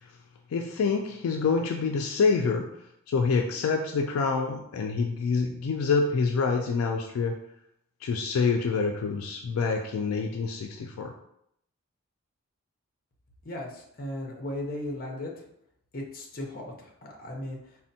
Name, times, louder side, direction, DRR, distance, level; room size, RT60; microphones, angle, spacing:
voice 1, 0.5-2.7 3.1-7.4 8.0-11.1, left 4 dB, 75° left, 3 dB, 0.3 m, -26 dB
voice 2, 13.4-15.3 15.9-17.8, left 1 dB, 45° left, 0 dB, 0.6 m, -36 dB
4.2 x 2.1 x 2.6 m, 0.74 s
head